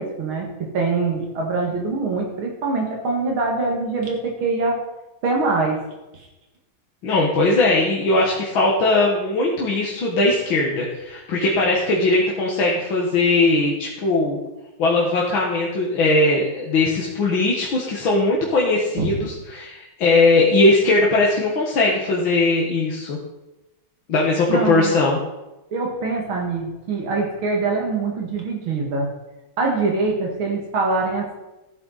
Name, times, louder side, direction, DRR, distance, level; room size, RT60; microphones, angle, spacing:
voice 1, 0.0-4.8 5.2-5.8 6.1-6.3 19.0-19.1 24.5-25.0 25.7-29.1 29.6-31.4, right 3 dB, 80° right, 0 dB, 2.8 m, -24 dB
voice 2, 7.0-14.4 14.8-23.2 24.1-25.2, left 2 dB, 75° left, -3 dB, 2.4 m, -19 dB
14.5 x 8.9 x 4.1 m, 1.0 s
omnidirectional pair, 2.2 m